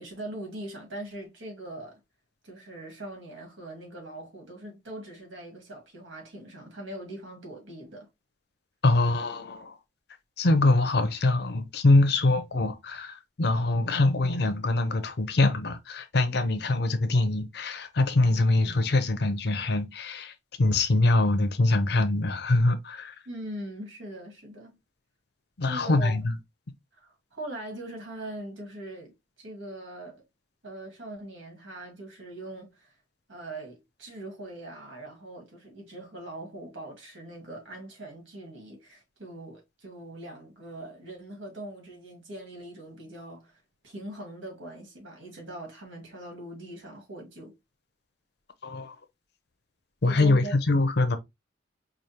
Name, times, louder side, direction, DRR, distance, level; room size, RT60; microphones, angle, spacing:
voice 1, 0.0-2.0 2.4-8.1 23.3-24.8 25.6-26.2 26.9-30.2 30.6-32.9 33.3-47.6 50.0-50.5, right 1 dB, 80° right, 1.9 m, -41 dB
voice 2, 8.8-9.8 10.4-23.1 25.6-26.3 48.6-49.0 50.0-51.2, left 2 dB, 55° left, 0.6 m, -24 dB
4.9 x 2.4 x 2.9 m
head